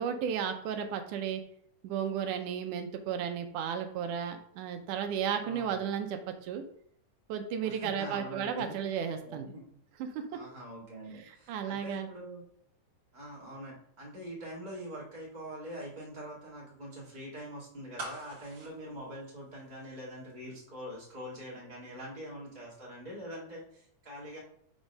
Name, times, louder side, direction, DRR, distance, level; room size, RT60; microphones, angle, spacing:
voice 1, 0.0-1.4 1.8-6.6 7.3-9.5 10.0-10.3 11.5-12.1, right 8 dB, 75° right, 6 dB, 2.0 m, -34 dB
voice 2, 5.4-5.8 7.6-8.6 9.2-9.8 10.3-12.4 13.1-24.4, equal, 20° right, -5 dB, 1.3 m, -44 dB
sound 1, 18.0-20.0 20.3-20.4, right 2 dB, 45° right, 2.0 m, -44 dB
6.0 x 3.7 x 5.3 m, 0.65 s
omnidirectional pair, 3.9 m